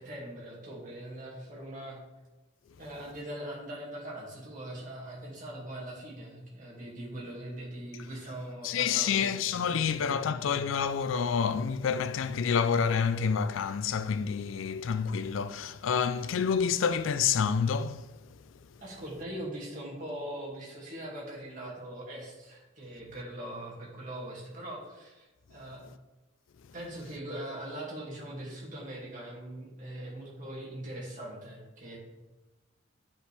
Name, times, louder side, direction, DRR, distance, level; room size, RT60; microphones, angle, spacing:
voice 1, 0.0-2.0 2.8-9.3 9.6-10.2 18.8-25.9 26.7-32.0, right 1 dB, 40° right, 2.3 m, -41 dB
voice 2, 8.6-18.1, left 6 dB, 75° left, 0.4 m, -28 dB
9.7 x 5.3 x 3.4 m
head